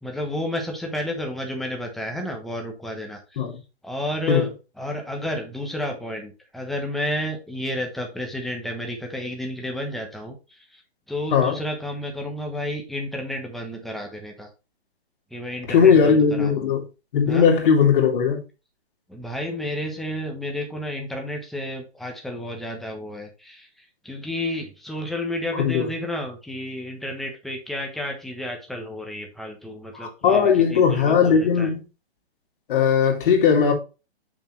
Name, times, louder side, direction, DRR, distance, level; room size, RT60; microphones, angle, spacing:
voice 1, 0.0-3.5 3.8-10.8 11.1-14.5 15.3-16.7 17.3-17.5 19.1-31.7, left 1 dB, ahead, 1.1 m, -31 dB
voice 2, 15.7-16.8 17.1-18.4 25.6-25.9 30.0-31.8 32.7-33.7, left 6 dB, 50° left, 2.5 m, -18 dB
6.8 x 6.0 x 3.1 m
hypercardioid pair, 155°, 33 cm